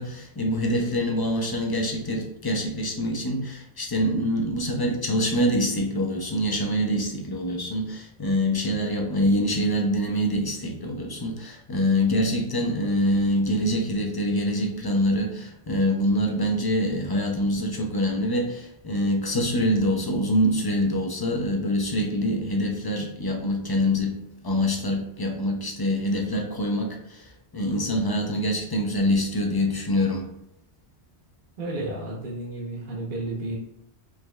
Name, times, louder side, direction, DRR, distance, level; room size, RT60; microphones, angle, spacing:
voice 1, 0.0-30.3, equal, 35° left, 1 dB, 0.4 m, -25 dB
voice 2, 31.6-33.5, right 2 dB, 50° right, -4 dB, 1.0 m, -32 dB
4.9 x 3.1 x 2.2 m, 0.78 s
omnidirectional pair, 1.1 m